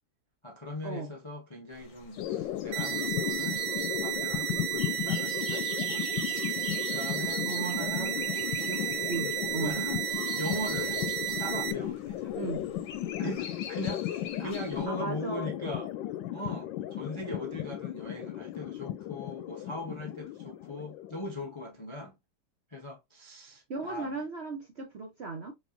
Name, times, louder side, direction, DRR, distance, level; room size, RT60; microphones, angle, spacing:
voice 1, 0.4-3.7 4.0-6.1 6.9-8.2 9.6-10.0 10.4-11.0 11.4-12.4 13.2-15.9 16.3-22.1 22.7-24.1, left 1 dB, 35° left, 0.5 m, -40 dB
sound 1, 1.7-14.9, left 6 dB, 55° left, 1.0 m, -46 dB
sound 2, 2.2-21.7, left 12 dB, 85° left, 1.3 m, -35 dB
sound 3, 2.7-11.7, right 12 dB, 80° right, 1.3 m, -33 dB
voice 2, 7.4-8.1 8.7-9.8 12.4-12.6 14.4-14.5 14.9-15.5 23.7-25.5, right 3 dB, 55° right, 0.7 m, -37 dB
5.3 x 3.3 x 2.5 m
omnidirectional pair, 2.0 m